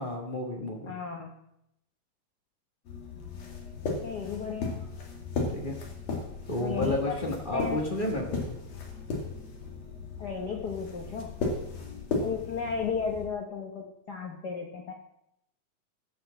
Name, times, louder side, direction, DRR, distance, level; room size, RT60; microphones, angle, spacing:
voice 1, 0.0-0.9 5.5-5.8 6.5-8.5, left 1 dB, 45° left, 1 dB, 0.6 m, -31 dB
voice 2, 0.9-1.3 3.1-4.9 6.6-7.8 10.2-11.4 12.2-14.9, left 6 dB, 85° left, 1 dB, 0.9 m, -35 dB
sound 1, 2.8-13.3, left 3 dB, 60° left, 3.1 m, -36 dB
14.5 x 5.8 x 7.3 m, 0.81 s
omnidirectional pair, 3.5 m